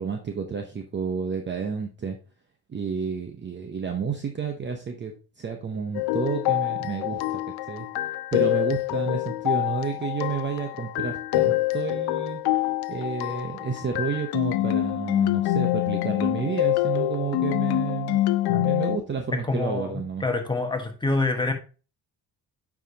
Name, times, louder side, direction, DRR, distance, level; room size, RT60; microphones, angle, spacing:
voice 1, 0.0-2.2 2.7-7.9 8.3-12.4 12.9-18.2 18.5-20.2, right 6 dB, 30° right, 4 dB, 0.8 m, -30 dB
sound 1, 5.9-19.0, left 15 dB, 80° left, 0.7 m, -26 dB
voice 2, 19.3-21.5, left 3 dB, 10° left, 4 dB, 1.3 m, -27 dB
8.9 x 4.9 x 2.8 m, 0.35 s
cardioid pair, 125°, 38 cm